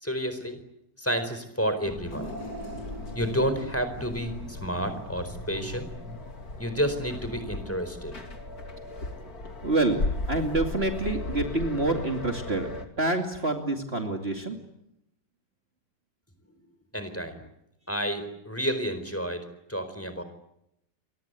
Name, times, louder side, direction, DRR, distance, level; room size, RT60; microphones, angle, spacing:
voice 1, 0.0-0.6 1.0-2.3 3.1-5.9 6.6-8.1 16.9-17.4 17.9-20.2, equal, 10° left, 9 dB, 4.4 m, -30 dB
sound 1, 1.9-12.9, left 2 dB, 60° left, 3.3 m, -37 dB
sound 2, 2.1-5.2 5.7-5.8 6.8-6.9, equal, 85° left, 6.8 m, -42 dB
voice 2, 9.6-10.0 10.3-12.7 13.0-14.6, right 2 dB, 35° right, 4 dB, 2.8 m, -27 dB
30.0 x 24.0 x 8.2 m, 0.81 s
omnidirectional pair, 1.8 m